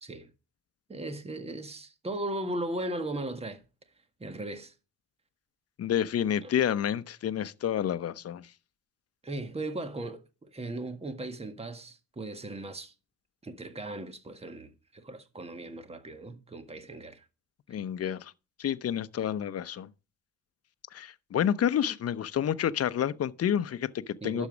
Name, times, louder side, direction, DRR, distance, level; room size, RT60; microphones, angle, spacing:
voice 1, 0.0-0.3 0.9-3.6 4.2-4.7 6.4-6.5 9.2-12.9 13.4-17.3 24.2-24.5, right 1 dB, 20° right, 1.7 m, -37 dB
voice 2, 5.8-8.5 17.7-18.3 18.6-19.9 20.9-24.5, left 9 dB, 50° left, 0.8 m, -29 dB
12.0 x 7.4 x 5.1 m
cardioid pair, 90°, 30 cm